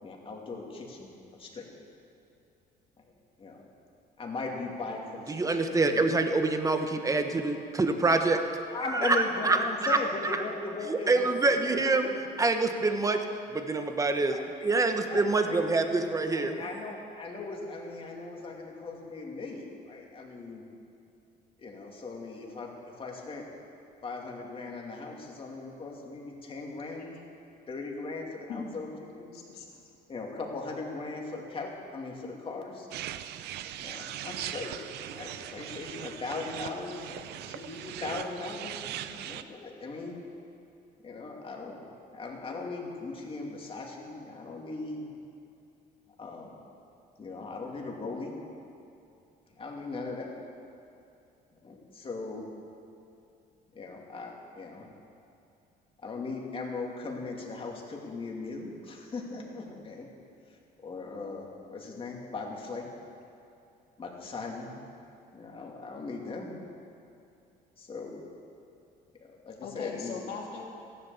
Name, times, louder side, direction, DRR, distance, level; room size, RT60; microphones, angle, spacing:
voice 1, 0.0-1.7 3.0-3.1 3.4-3.6 4.2-5.6 5.9-6.1 8.7-12.2 12.9-13.0 14.2-20.6 21.6-23.5 24.0-27.1 27.7-28.9 29.2-29.3 30.1-32.9 33.8-34.8 35.1-40.2 41.0-41.8 42.1-45.1 46.2-46.6 47.2-48.3 49.6-50.4 51.6-52.5 53.7-54.9 56.0-60.1 60.8-62.9 64.0-64.8 65.3-66.5 67.8-68.2 69.2-70.2, left 3 dB, 35° left, -1 dB, 2.7 m, -39 dB
voice 2, 5.3-8.4 9.0-10.0 10.9-12.1 12.4-13.2 13.5-14.4 14.6-16.5, right 3 dB, 20° right, 6 dB, 1.1 m, -26 dB
voice 3, 29.3-29.8 69.6-70.6, left 6 dB, 70° left, -2 dB, 3.2 m, -40 dB
sound 1, 32.9-39.4, right 11 dB, 80° right, 0.6 m, -40 dB
14.5 x 11.5 x 7.1 m, 2.7 s
cardioid pair, 110°, 17 cm